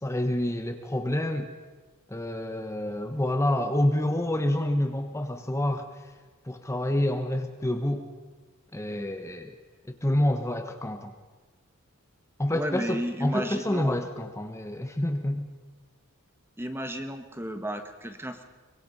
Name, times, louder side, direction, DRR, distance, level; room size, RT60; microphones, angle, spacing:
voice 1, 0.0-1.5 2.1-5.9 6.4-8.0 8.7-9.5 9.9-11.1 12.4-15.5, left 1 dB, 15° left, 5 dB, 1.1 m, -28 dB
voice 2, 12.5-14.0 16.6-18.4, equal, 10° right, 7 dB, 1.4 m, -33 dB
24.0 x 21.5 x 5.5 m, 1.3 s
head